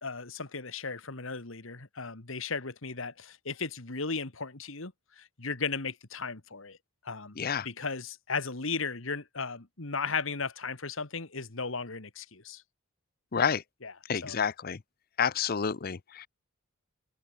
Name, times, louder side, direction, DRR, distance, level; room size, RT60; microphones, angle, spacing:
voice 1, 0.0-6.8 7.0-7.4 7.6-12.6 13.8-13.9 14.2-14.4, left 4 dB, 70° left, 2.0 m, -36 dB
voice 2, 14.1-14.8 15.2-16.3, left 7 dB, 45° left, 0.6 m, -29 dB
open air
head